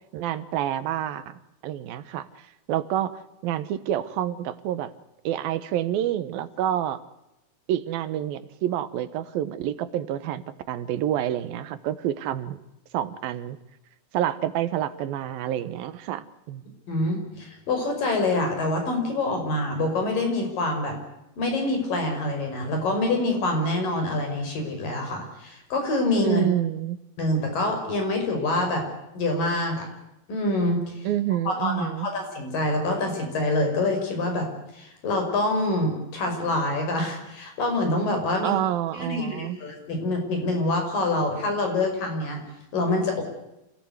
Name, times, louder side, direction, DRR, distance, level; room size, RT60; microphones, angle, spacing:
voice 1, 0.1-2.3 2.7-4.9 5.2-7.0 7.7-12.6 12.9-13.6 14.1-16.6 26.2-27.0 31.0-32.1 38.4-39.6, right 11 dB, 85° right, 13 dB, 3.0 m, -28 dB
voice 2, 16.9-21.0 21.4-26.4 27.2-28.8 29.2-29.9 30.3-30.9 31.5-34.5 34.7-38.6 38.9-42.4 42.7-43.2, left 2 dB, 70° left, 3 dB, 7.2 m, -26 dB
27.5 x 17.0 x 8.1 m, 0.89 s
omnidirectional pair, 4.1 m